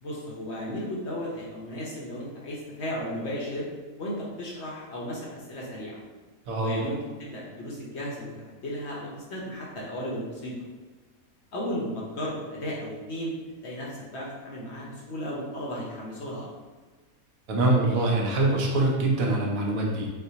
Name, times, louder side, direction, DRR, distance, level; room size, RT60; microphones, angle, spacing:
voice 1, 0.0-3.7 4.0-6.0 6.6-10.5 11.5-13.3 13.6-16.5, equal, 60° left, -4 dB, 0.8 m, -34 dB
voice 2, 6.5-6.8 17.5-20.1, right 2 dB, 75° right, -1 dB, 1.0 m, -24 dB
4.2 x 2.2 x 2.6 m, 1.4 s
omnidirectional pair, 1.5 m